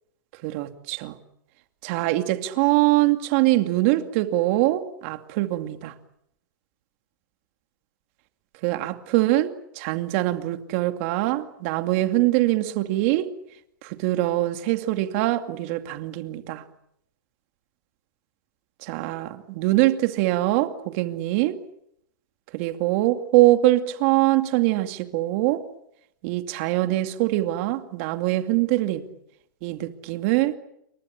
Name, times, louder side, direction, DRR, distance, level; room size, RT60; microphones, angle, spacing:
voice 1, 0.4-1.2 1.8-5.9 8.6-13.3 13.8-16.6 18.8-21.6 22.5-25.6 26.2-29.0 29.6-30.6, right 16 dB, 40° right, 8 dB, 2.4 m, -23 dB
29.0 x 24.5 x 7.3 m, 0.76 s
hypercardioid pair, 160°, 11 cm